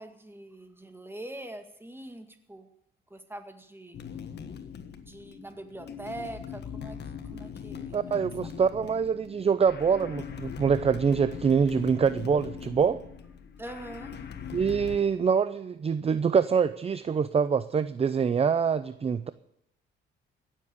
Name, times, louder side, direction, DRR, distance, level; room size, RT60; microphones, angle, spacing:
voice 1, 0.0-2.7 3.1-4.0 5.0-7.0 7.3-8.2 13.6-14.2, right 1 dB, 10° right, 7 dB, 2.0 m, -43 dB
sound 1, 3.9-15.0, left 7 dB, 60° left, 1.5 m, -41 dB
voice 2, 7.9-13.0 14.5-19.3, right 6 dB, 30° right, 14 dB, 0.6 m, -25 dB
16.0 x 7.5 x 9.7 m, 0.77 s
cardioid pair, 90°, 20 cm